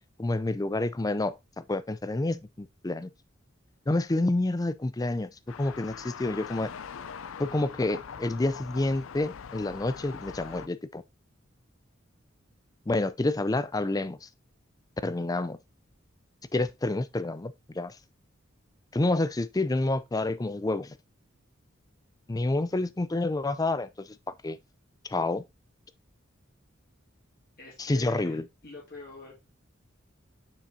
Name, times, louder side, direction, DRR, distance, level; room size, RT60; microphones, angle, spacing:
voice 1, 0.2-3.1 3.9-6.7 7.4-11.0 12.9-14.3 15.0-15.6 16.5-18.0 18.9-21.0 22.3-24.1 24.4-24.6 25.0-25.4 27.8-28.4, left 2 dB, 20° left, 0.4 m, -28 dB
sound 1, 5.5-10.7, left 7 dB, 90° left, 0.5 m, -42 dB
voice 2, 27.6-28.4 28.6-29.3, left 2 dB, 50° left, 2.4 m, -44 dB
6.9 x 5.9 x 2.7 m
head